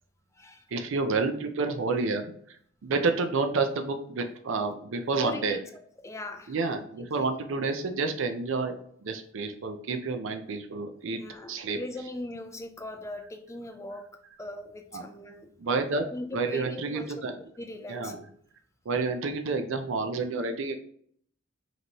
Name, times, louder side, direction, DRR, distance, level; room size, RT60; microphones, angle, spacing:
voice 1, 0.7-2.3 2.8-5.6 6.5-8.7 9.0-11.2 11.5-11.8 14.9-15.0 15.6-17.4 17.9-18.2 18.9-20.8, right 4 dB, 65° right, 0.5 m, -29 dB
voice 2, 5.1-5.6 6.0-6.8 7.2-7.3 11.0-15.8 16.1-17.2 17.6-18.2, left 1 dB, 15° left, 0.4 m, -40 dB
5.2 x 3.0 x 2.9 m
head